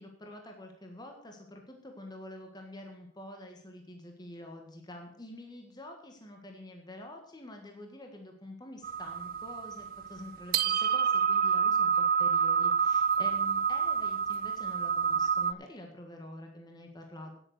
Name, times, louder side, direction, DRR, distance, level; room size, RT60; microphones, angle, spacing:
voice 1, 0.0-17.3, left 1 dB, 20° left, 3 dB, 1.6 m, -47 dB
sound 1, 8.8-15.5, right 7 dB, 45° right, 0.4 m, -28 dB
9.9 x 8.7 x 6.6 m, 0.63 s
head